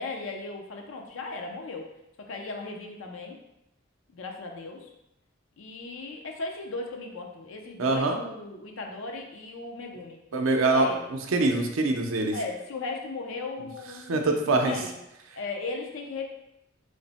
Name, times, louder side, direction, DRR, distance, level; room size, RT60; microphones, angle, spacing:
voice 1, 0.0-1.9 2.2-3.4 4.1-4.9 5.6-10.2 10.7-11.1 12.3-15.0 15.3-16.2, left 3 dB, 75° left, 2 dB, 0.5 m, -36 dB
voice 2, 7.8-8.2 10.3-10.9 11.3-12.4 14.1-14.7, right 2 dB, 85° right, 3 dB, 0.5 m, -24 dB
3.1 x 2.0 x 4.0 m, 0.88 s
head